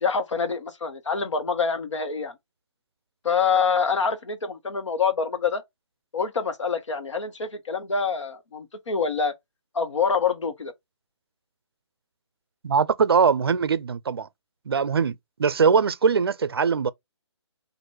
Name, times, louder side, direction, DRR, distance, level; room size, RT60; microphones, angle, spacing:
voice 1, 0.0-2.3 3.2-5.6 6.1-9.3 9.7-10.7, left 5 dB, 80° left, 1.1 m, -26 dB
voice 2, 12.6-14.3 14.7-16.9, right 6 dB, 55° right, 0.4 m, -22 dB
3.1 x 2.5 x 4.3 m
hypercardioid pair, 175°, 15 cm